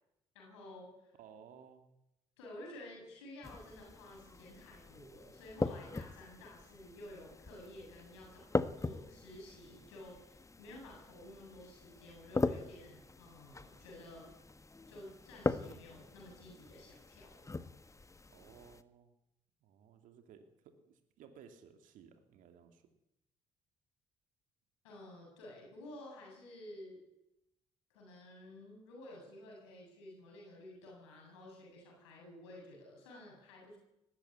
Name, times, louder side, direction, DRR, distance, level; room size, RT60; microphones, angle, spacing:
voice 1, 0.3-1.2 2.4-14.3 14.9-17.5 24.8-27.0 27.9-33.8, left 1 dB, 80° left, -1 dB, 7.6 m, -52 dB
voice 2, 1.2-1.8 18.3-19.1 19.6-22.8, right 7 dB, 65° right, 6 dB, 2.7 m, -58 dB
sound 1, 3.4-18.8, left 3 dB, 20° left, 1.5 m, -41 dB
19.0 x 15.5 x 9.6 m, 0.85 s
hypercardioid pair, 45°, 15 cm